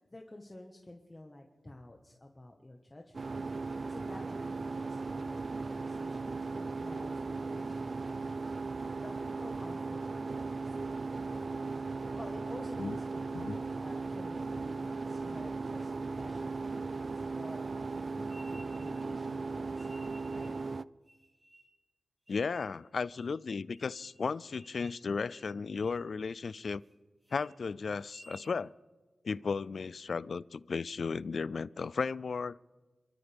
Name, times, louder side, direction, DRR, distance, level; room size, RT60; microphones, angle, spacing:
voice 1, 0.0-3.3 3.9-11.5 12.2-20.5, left 1 dB, 20° left, 1.5 m, -51 dB
sound 1, 3.1-20.8, right 4 dB, 45° right, 0.4 m, -37 dB
sound 2, 18.2-19.1 19.7-20.6 21.0-21.8 22.3-22.7 23.2-23.3 23.7-24.2 24.5-25.0 25.3-25.5 25.8-26.1 26.5-26.9 27.2-27.5 28.0-28.5, right 1 dB, 15° right, 4.0 m, -57 dB
voice 2, 22.3-26.8 27.3-28.7 29.2-32.6, left 5 dB, 65° left, 0.4 m, -35 dB
29.5 x 13.5 x 3.6 m
cardioid pair, 65°, 0 cm